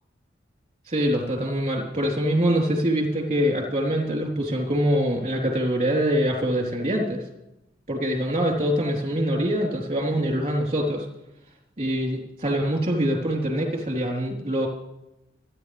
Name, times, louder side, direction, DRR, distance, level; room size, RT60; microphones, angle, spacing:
voice 1, 0.9-7.2 7.9-11.1 11.8-14.7, equal, 35° right, 1 dB, 3.9 m, -24 dB
29.0 x 10.0 x 3.5 m, 0.89 s
head